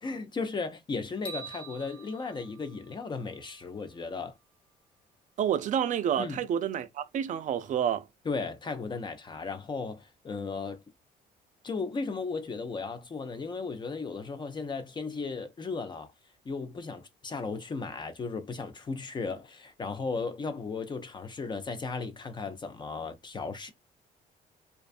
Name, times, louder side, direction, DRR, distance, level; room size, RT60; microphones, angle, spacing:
voice 1, 0.0-4.4 6.2-6.4 8.3-10.8 11.6-16.1 16.5-23.7, left 4 dB, 30° left, 0.4 m, -35 dB
sound 1, 1.2-3.5, right 4 dB, 10° left, 0.9 m, -45 dB
voice 2, 5.4-8.1, right 9 dB, 50° right, 0.4 m, -29 dB
2.4 x 2.2 x 2.5 m
cardioid pair, 95°, 16 cm